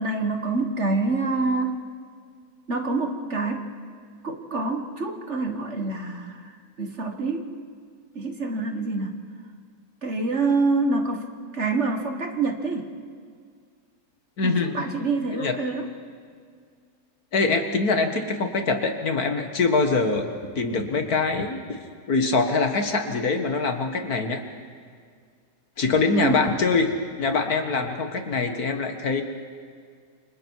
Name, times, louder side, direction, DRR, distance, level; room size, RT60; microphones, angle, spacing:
voice 1, 0.0-1.8 2.7-3.6 4.2-7.5 8.2-9.2 10.0-11.3 11.5-12.9 14.4-15.9 26.1-26.5, right 3 dB, 40° right, 5 dB, 1.8 m, -26 dB
voice 2, 14.4-14.7 15.3-15.5 17.3-20.3 20.6-21.8 22.1-24.4 25.8-26.9 27.2-29.2, left 4 dB, 60° left, 6 dB, 2.1 m, -23 dB
29.0 x 25.5 x 4.7 m, 2.1 s
omnidirectional pair, 1.9 m